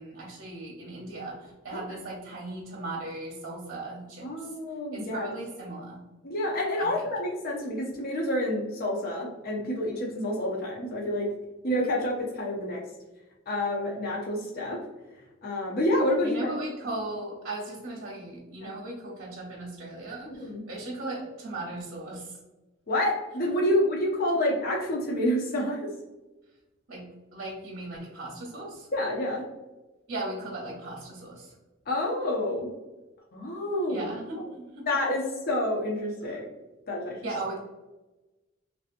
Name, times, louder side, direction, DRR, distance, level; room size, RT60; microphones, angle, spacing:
voice 1, 0.0-4.5 4.9-6.0 6.8-6.9 16.2-22.4 26.9-27.0 27.3-28.9 30.1-31.5 33.9-34.9 37.2-37.6, right 2 dB, 55° right, -3 dB, 0.8 m, -37 dB
voice 2, 4.2-5.3 6.2-11.3 11.6-12.8 13.5-14.8 15.4-16.5 18.6-18.7 20.3-20.6 22.9-25.9 28.9-29.4 31.9-32.7 33.3-34.1 34.9-36.5 36.9-37.2, left 1 dB, 50° left, -2 dB, 0.6 m, -28 dB
3.3 x 2.8 x 2.5 m, 1.1 s
head